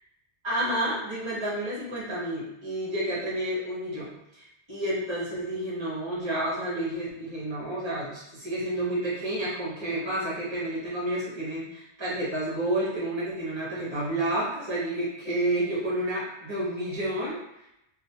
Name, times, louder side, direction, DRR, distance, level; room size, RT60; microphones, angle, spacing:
voice 1, 0.4-17.7, right 1 dB, 25° right, -8 dB, 1.1 m, -30 dB
3.0 x 2.3 x 2.8 m, 0.85 s
omnidirectional pair, 1.1 m